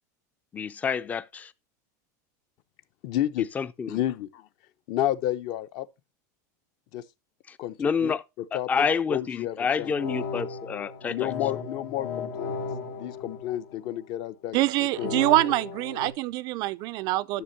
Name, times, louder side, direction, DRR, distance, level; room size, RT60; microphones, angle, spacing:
voice 1, 0.5-1.5 3.5-4.0 7.5-8.2 8.5-11.3, left 6 dB, 15° left, 0.4 m, -28 dB
voice 2, 3.0-3.5 3.9-4.5 4.9-5.9 6.9-7.0 7.6-8.1 8.5-8.7 9.1-9.9 11.1-12.6 12.9-14.6 15.0-15.3 17.3-17.4, left 12 dB, 50° left, 0.7 m, -30 dB
sound 1, 9.7-14.1 14.9-16.1, left 5 dB, 90° left, 2.5 m, -36 dB
voice 3, 14.5-17.4, right 17 dB, 45° right, 0.4 m, -25 dB
11.0 x 6.6 x 2.7 m
supercardioid pair, 145°, 9 cm